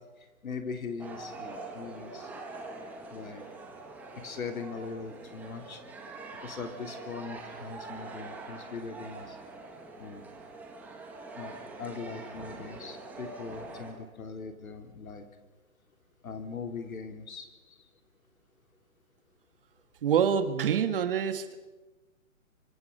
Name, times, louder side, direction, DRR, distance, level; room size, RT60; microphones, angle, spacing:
voice 1, 0.4-2.3 3.1-3.4 4.2-5.8 6.4-9.4 10.0-10.3 11.3-15.3 16.2-17.8, left 5 dB, 85° left, 6 dB, 3.6 m, -40 dB
sound 1, 1.0-13.9, right 3 dB, 5° right, 1.3 m, -44 dB
voice 2, 20.0-21.6, right 8 dB, 40° right, 9 dB, 1.7 m, -27 dB
25.0 x 24.0 x 5.5 m, 1.2 s
hypercardioid pair, 170°, 41 cm